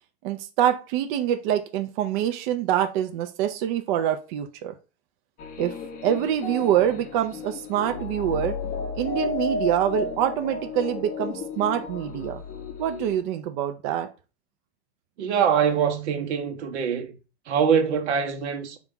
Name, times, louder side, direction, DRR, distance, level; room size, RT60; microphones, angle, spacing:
voice 1, 0.2-4.7 5.6-5.7 6.0-8.6 9.0-12.4 12.8-14.1, right 10 dB, 50° right, 0.5 m, -25 dB
sound 1, 5.4-13.2, left 4 dB, 25° left, 0.6 m, -33 dB
voice 2, 15.2-17.1 17.5-18.8, right 7 dB, 80° right, 0.8 m, -23 dB
3.9 x 2.3 x 3.7 m
supercardioid pair, 135°, 33 cm